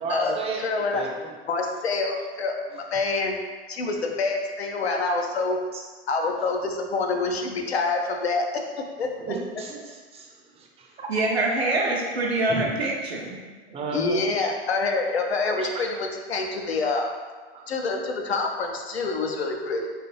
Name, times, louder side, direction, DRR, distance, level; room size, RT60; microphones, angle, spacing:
voice 1, 0.0-1.3 5.7-5.8 9.2-10.4 12.5-12.7 13.7-14.5 15.6-15.7 17.5-17.7, right 3 dB, 20° right, 0 dB, 0.5 m, -33 dB
voice 2, 0.6-1.0 1.5-3.3 3.7-5.6 6.1-8.6 9.0-9.1 13.9-17.1 17.7-19.9, left 3 dB, 80° left, 2 dB, 0.5 m, -26 dB
voice 3, 11.1-13.4, right 2 dB, 85° right, -2 dB, 0.7 m, -25 dB
3.3 x 2.5 x 3.0 m, 1.4 s
figure-of-eight pair, 80°, 31 cm